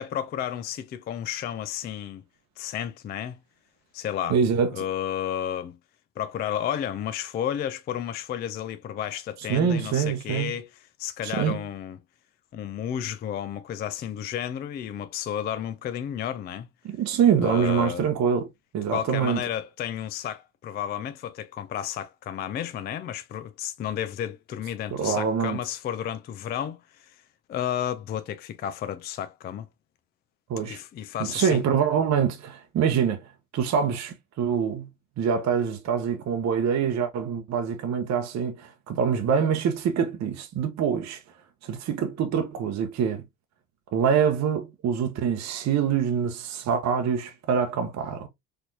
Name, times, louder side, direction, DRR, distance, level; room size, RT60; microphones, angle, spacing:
voice 1, 0.0-2.2 2.6-3.4 3.9-4.4 4.7-5.8 6.2-10.7 11.0-12.0 12.5-16.7 17.4-18.0 18.9-27.2 27.5-29.7 30.6-31.6, left 10 dB, 25° left, 0.3 m, -32 dB
voice 2, 4.3-4.7 9.5-10.5 11.2-11.6 16.9-18.5 18.7-19.4 24.9-25.6 30.5-30.8 31.2-33.2 33.5-34.9 35.2-41.2 41.6-43.2 43.9-48.3, right 7 dB, 35° right, 0.8 m, -25 dB
4.3 x 2.6 x 2.6 m
hypercardioid pair, 70°, 46 cm